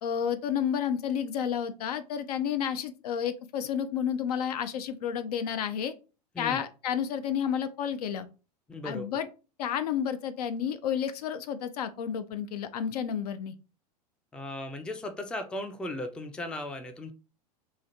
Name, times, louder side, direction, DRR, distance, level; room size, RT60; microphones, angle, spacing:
voice 1, 0.0-5.9 6.4-8.3 8.8-9.3 9.6-13.6, left 8 dB, 70° left, 0.4 m, -31 dB
voice 2, 8.7-9.2 14.3-17.1, left 1 dB, 5° left, 0.3 m, -37 dB
2.9 x 2.4 x 2.6 m
hypercardioid pair, 95°, 21 cm